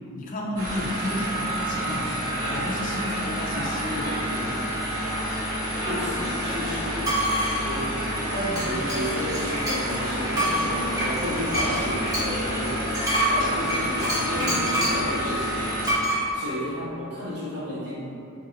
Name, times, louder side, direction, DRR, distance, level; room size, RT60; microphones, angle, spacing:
voice 1, 0.1-4.7, left 1 dB, 40° left, -2 dB, 0.3 m, -32 dB
sound 1, 0.6-15.9, equal, 85° right, 1.1 m, -29 dB
voice 2, 5.7-7.2 7.6-7.9 8.3-12.9 13.3-16.0 16.3-18.2, equal, 55° right, -10 dB, 1.0 m, -31 dB
sound 2, 7.0-7.6 8.6-10.0 10.3-15.1 15.8-16.2, right 1 dB, 20° right, 0.8 m, -27 dB
2.8 x 2.7 x 2.5 m, 2.8 s
head